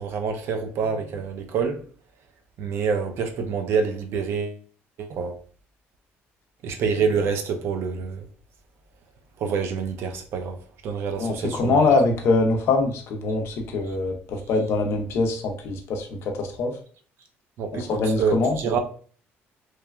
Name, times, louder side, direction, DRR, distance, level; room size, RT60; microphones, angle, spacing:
voice 1, 0.0-1.8 2.6-4.6 5.0-5.3 6.6-8.3 9.4-11.8 17.6-18.8, right 5 dB, 60° right, 0.4 m, -27 dB
voice 2, 11.2-16.7 17.8-18.6, left 3 dB, 60° left, 0.6 m, -23 dB
3.1 x 2.2 x 2.3 m
cardioid pair, 140°, 5 cm